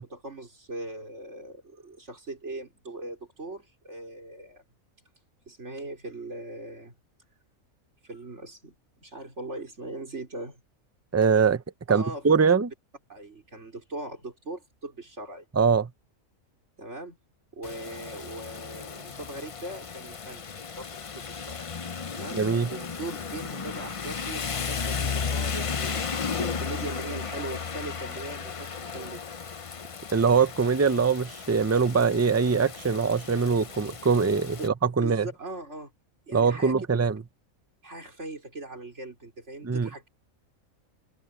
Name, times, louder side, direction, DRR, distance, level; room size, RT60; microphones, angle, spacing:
voice 1, 0.0-4.6 5.5-6.9 8.0-8.7 9.0-10.6 11.9-12.6 13.1-15.5 16.8-17.2 17.5-20.4 20.8-21.7 22.1-29.2 34.6-34.7 35.0-35.9 36.3-36.8 37.8-40.1, right 2 dB, 55° right, 5.1 m, -40 dB
voice 2, 11.1-11.6 11.9-12.7 15.6-15.9 22.3-22.7 30.1-35.3 36.3-37.2 39.6-39.9, right 5 dB, 25° right, 0.3 m, -23 dB
Rain, 17.6-34.7, left 5 dB, 45° left, 0.4 m, -35 dB
open air
omnidirectional pair, 1.5 m